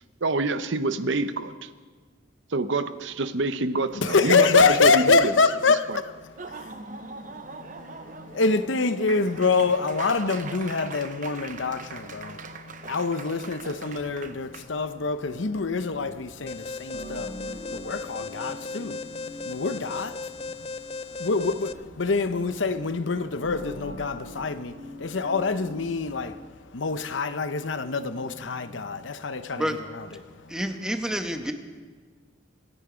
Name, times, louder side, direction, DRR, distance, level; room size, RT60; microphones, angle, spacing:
voice 1, 0.2-1.7 2.5-5.3, right 3 dB, 75° right, 0.8 m, -26 dB
voice 2, 3.9-29.7 29.9-30.6, left 4 dB, 80° left, 0.8 m, -26 dB
Laughter / Applause, 6.2-14.7, right 4 dB, 40° right, 0.8 m, -41 dB
sound 1, 14.5-26.3, equal, 45° left, 2.7 m, -45 dB
Alarm, 16.5-21.7, left 3 dB, 30° left, 0.4 m, -37 dB
voice 3, 30.5-31.5, equal, 5° right, 1.0 m, -28 dB
26.0 x 10.0 x 5.1 m
head